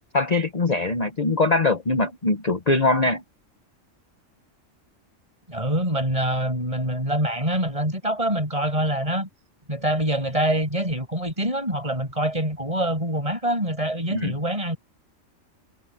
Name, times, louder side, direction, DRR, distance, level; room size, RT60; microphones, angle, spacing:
voice 1, 0.1-3.2 14.1-14.3, left 2 dB, 30° left, 1.2 m, -22 dB
voice 2, 5.5-9.3 9.7-14.8, right 1 dB, 25° right, 7.1 m, -25 dB
omnidirectional pair, 1.3 m